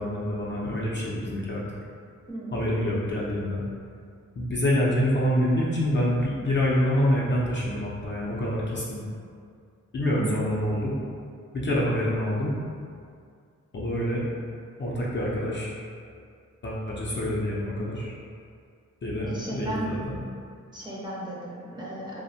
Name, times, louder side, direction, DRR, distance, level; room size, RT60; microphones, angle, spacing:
voice 1, 0.0-1.6 2.5-3.6 4.4-9.1 9.9-11.0 11.5-12.5 13.7-14.2 14.8-15.7 16.6-18.1 19.0-20.2, equal, 35° left, -6 dB, 0.5 m, -26 dB
voice 2, 2.3-2.6 10.1-10.5 19.2-19.9 20.7-22.2, right 2 dB, 15° right, -7 dB, 0.6 m, -35 dB
2.6 x 2.1 x 2.6 m, 2.2 s
cardioid pair, 65°, 31 cm